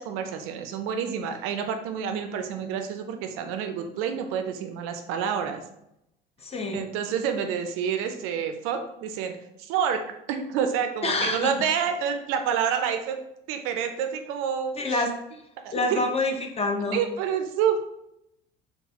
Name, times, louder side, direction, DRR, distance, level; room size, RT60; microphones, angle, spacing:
voice 1, 0.0-5.6 6.7-13.2 13.5-15.0 15.6-16.0 16.9-17.8, right 7 dB, 50° right, 6 dB, 0.4 m, -28 dB
voice 2, 6.4-6.8 11.0-11.5 14.8-15.1 15.7-17.0, left 2 dB, 20° left, 3 dB, 0.5 m, -26 dB
3.8 x 2.3 x 2.7 m, 0.81 s
figure-of-eight pair, 65°, 29 cm